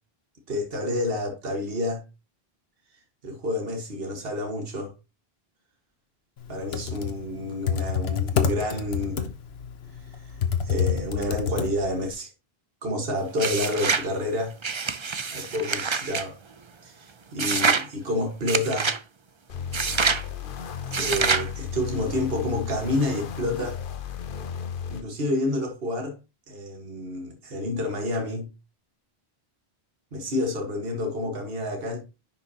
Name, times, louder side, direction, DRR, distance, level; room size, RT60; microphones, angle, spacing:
voice 1, 0.5-2.0 3.2-4.9 6.5-9.2 10.1-10.2 10.6-12.3 12.8-14.6 15.3-16.4 16.8-18.9 20.9-23.8 24.9-26.2 26.5-28.5 30.1-32.0, left 1 dB, 70° right, 1.8 m, -29 dB
Computer keyboard, 6.5-12.1, left 7 dB, 80° left, 1.2 m, -27 dB
sound 1, 13.4-14.1 14.6-16.3 17.4-17.9 18.5-19.0 19.7-20.2 20.9-21.5, right 5 dB, 35° right, 0.6 m, -25 dB
sound 2, 19.5-25.0, left 7 dB, 60° left, 0.9 m, -34 dB
10.5 x 5.8 x 2.9 m
omnidirectional pair, 1.0 m